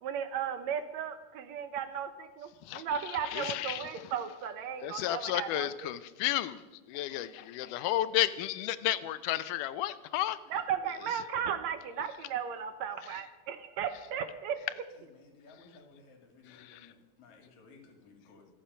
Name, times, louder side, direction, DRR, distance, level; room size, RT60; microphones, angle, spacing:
voice 1, 0.0-5.9 10.5-14.6, right 8 dB, 70° right, 1.9 m, -35 dB
voice 2, 3.3-3.8 4.8-6.6 6.9-10.4, left 14 dB, 85° left, 2.2 m, -32 dB
voice 3, 14.9-18.5, left 4 dB, 65° left, 3.6 m, -57 dB
26.0 x 9.0 x 5.5 m
omnidirectional pair, 3.6 m